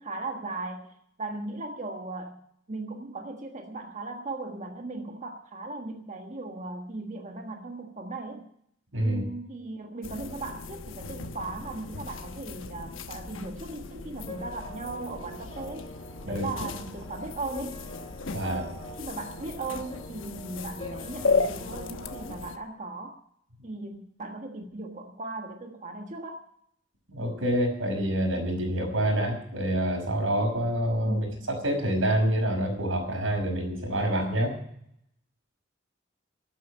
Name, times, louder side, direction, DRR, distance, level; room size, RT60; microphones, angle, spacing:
voice 1, 0.0-2.4 2.7-8.5 9.0-15.9 16.2-17.8 18.4-23.2 23.6-26.4 31.0-31.6, right 2 dB, 40° right, 3 dB, 1.4 m, -37 dB
sound 1, 10.0-22.6, left 4 dB, 90° left, 1.1 m, -35 dB
sound 2, 14.2-22.4, equal, 25° left, 6.4 m, -46 dB
voice 2, 27.1-34.5, right 1 dB, 90° right, 2 dB, 5.6 m, -27 dB
12.0 x 9.1 x 9.8 m, 0.70 s
head